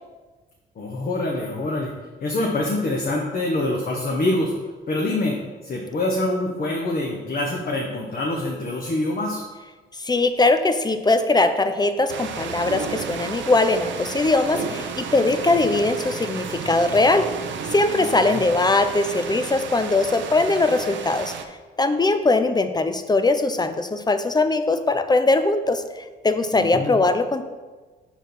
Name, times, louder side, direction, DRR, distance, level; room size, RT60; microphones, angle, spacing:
voice 1, 0.8-1.9 2.2-4.5 4.9-5.4 5.6-9.4 17.9-18.4 26.5-27.0, left 2 dB, 45° left, -1 dB, 1.1 m, -25 dB
voice 2, 10.0-17.3 17.7-21.3 21.8-25.8 26.2-27.5, left 2 dB, 20° left, 9 dB, 0.5 m, -20 dB
sound 1, 12.1-21.4, right 6 dB, 70° right, 0.7 m, -33 dB
5.4 x 4.6 x 6.0 m, 1.3 s
cardioid pair, 90°, 20 cm